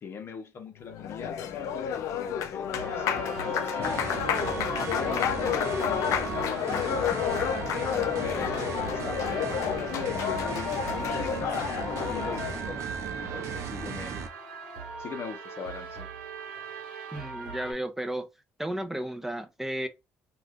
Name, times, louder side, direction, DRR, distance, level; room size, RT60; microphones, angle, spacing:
voice 1, 0.0-6.2 6.5-7.2 7.9-11.5 12.0-12.9 13.2-14.2 15.0-16.1, left 5 dB, 50° left, 0.9 m, -41 dB
Applause, 0.8-12.6, left 9 dB, 75° left, 0.4 m, -30 dB
sound 1, 2.7-17.7, right 4 dB, 90° right, 1.1 m, -39 dB
sound 2, 3.8-14.3, right 5 dB, 60° right, 0.7 m, -37 dB
voice 2, 17.1-18.3 18.6-19.9, right 1 dB, 5° right, 0.7 m, -33 dB
2.5 x 2.4 x 3.5 m
supercardioid pair, 80°, 5 cm